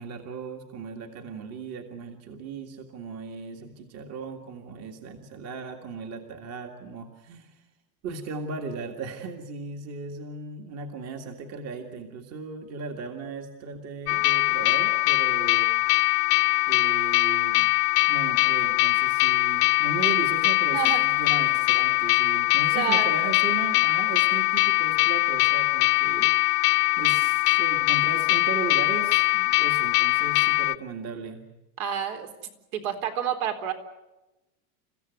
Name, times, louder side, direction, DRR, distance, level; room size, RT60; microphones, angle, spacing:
voice 1, 0.0-7.6 8.0-15.7 16.7-17.7 18.1-26.6 27.0-31.4, right 4 dB, 35° right, 4 dB, 2.0 m, -37 dB
sound 1, 14.1-30.8, left 23 dB, 80° left, 1.0 m, -22 dB
voice 2, 20.7-21.0 22.7-23.1 31.8-32.3 32.7-33.7, right 9 dB, 70° right, 6 dB, 4.0 m, -29 dB
30.0 x 15.5 x 9.4 m, 1.0 s
supercardioid pair, 170°, 46 cm